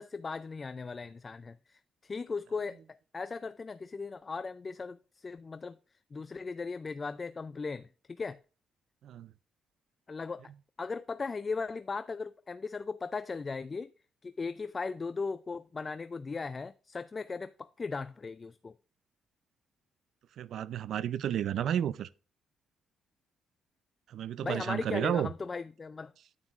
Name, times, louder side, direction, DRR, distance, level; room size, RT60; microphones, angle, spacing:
voice 1, 0.0-5.8 6.1-8.4 10.1-10.4 10.8-13.9 14.2-18.8 24.4-26.1, left 4 dB, 30° left, 0.4 m, -37 dB
voice 2, 20.4-22.1 24.1-25.3, right 10 dB, 70° right, 0.4 m, -32 dB
9.6 x 9.1 x 2.4 m
cardioid pair, 90°, 0 cm